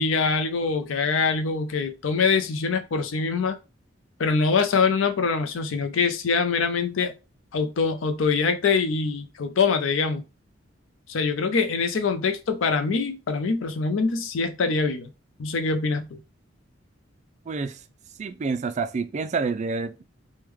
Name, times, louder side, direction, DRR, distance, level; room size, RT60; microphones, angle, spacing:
voice 1, 0.0-3.6 4.2-7.1 7.5-10.2 11.1-15.1 15.4-16.2, left 4 dB, 90° left, 0.5 m, -24 dB
voice 2, 17.5-17.8 18.2-20.0, right 4 dB, 35° right, 0.3 m, -28 dB
3.1 x 2.2 x 3.5 m
head